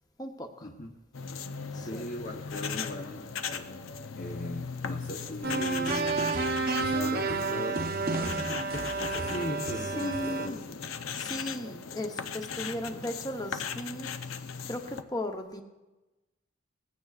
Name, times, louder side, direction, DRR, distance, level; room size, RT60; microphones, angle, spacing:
voice 1, 0.2-0.7 1.7-2.1 10.0-10.6 11.2-14.1 14.7-15.6, left 1 dB, 20° left, 5 dB, 0.8 m, -36 dB
sound 1, 1.1-15.0, left 6 dB, 90° left, 0.7 m, -38 dB
voice 2, 1.7-3.8 4.1-6.2 6.8-7.8 8.1-10.9, left 1 dB, 40° left, 2 dB, 0.9 m, -39 dB
sound 2, 5.4-10.5, right 3 dB, 45° right, 0.8 m, -30 dB
19.5 x 15.5 x 2.4 m, 1.1 s
head